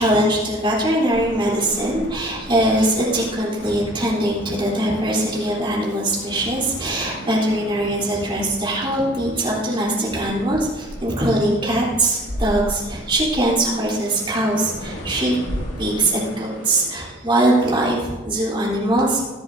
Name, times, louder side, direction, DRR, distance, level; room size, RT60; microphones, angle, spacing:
voice 1, 0.0-19.2, right 1 dB, 25° right, -6 dB, 3.6 m, -21 dB
sound 1, 1.1-17.1, equal, 75° left, 2.4 m, -36 dB
21.0 x 7.7 x 2.8 m, 1.2 s
head